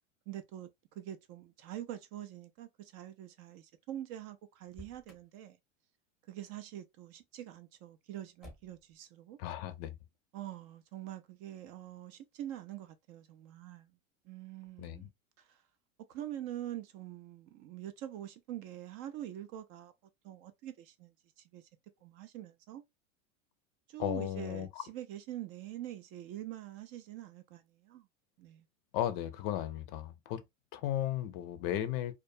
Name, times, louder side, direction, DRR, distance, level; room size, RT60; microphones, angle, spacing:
voice 1, 0.3-0.7 1.0-5.6 6.3-9.4 10.3-13.9 14.2-15.1 15.4-15.6 16.1-19.9 20.2-21.7 22.0-22.8 23.9-28.1 28.4-28.6, right 12 dB, 40° right, 0.4 m, -45 dB
Motor vehicle (road), 4.6-5.4 8.4-9.0, left 2 dB, ahead, 0.7 m, -53 dB
voice 2, 9.4-10.0 14.8-15.1 24.0-24.9 28.9-30.4 30.7-32.1, left 12 dB, 45° left, 0.5 m, -35 dB
2.2 x 2.2 x 2.5 m
hypercardioid pair, 105°, 40 cm